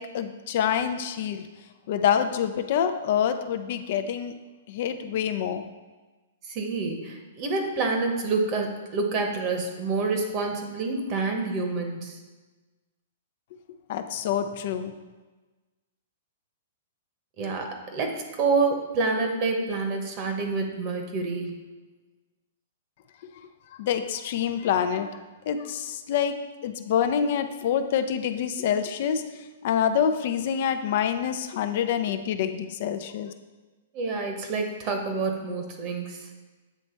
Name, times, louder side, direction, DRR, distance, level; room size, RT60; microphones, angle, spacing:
voice 1, 0.0-1.4 1.9-4.3 4.7-5.7 13.9-14.9 23.8-25.1 25.5-26.4 26.6-29.2 29.6-33.3, left 8 dB, 55° left, 9 dB, 0.4 m, -26 dB
voice 2, 6.5-12.2 17.4-21.6 33.9-36.3, right 3 dB, 35° right, 3 dB, 1.0 m, -28 dB
8.2 x 3.2 x 4.4 m, 1.2 s
hypercardioid pair, 145°, 0 cm